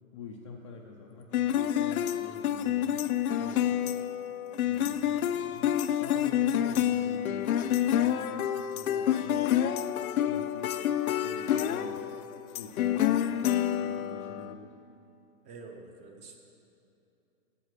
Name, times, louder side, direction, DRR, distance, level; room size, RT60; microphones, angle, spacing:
voice 1, 0.1-3.1 3.4-3.9 4.6-9.8 10.2-10.8 11.2-12.3 12.6-14.7, left 4 dB, 25° left, -1 dB, 0.4 m, -46 dB
sound 1, 1.3-14.5, left 10 dB, 90° left, 0.6 m, -28 dB
voice 2, 15.4-16.4, right 4 dB, 15° right, 3 dB, 0.6 m, -47 dB
11.0 x 8.4 x 6.5 m, 2.8 s
hypercardioid pair, 155°, 41 cm